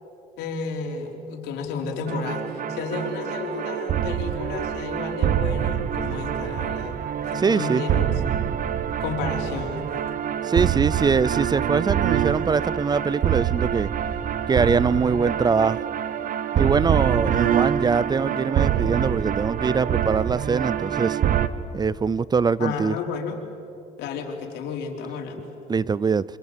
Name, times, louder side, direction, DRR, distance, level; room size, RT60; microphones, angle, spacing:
voice 1, 0.4-2.4 2.7-8.2 9.0-10.0 22.6-23.4 24.0-25.5, left 4 dB, 85° left, 2 dB, 3.7 m, -32 dB
sound 1, 2.1-21.5, right 10 dB, 55° right, 1.1 m, -25 dB
voice 2, 7.4-7.8 10.4-13.9 14.5-15.8 16.5-21.2 21.7-23.0 25.7-26.2, right 5 dB, 25° right, 20 dB, 0.5 m, -23 dB
27.0 x 25.5 x 7.5 m, 2.7 s
cardioid pair, 110°, 17 cm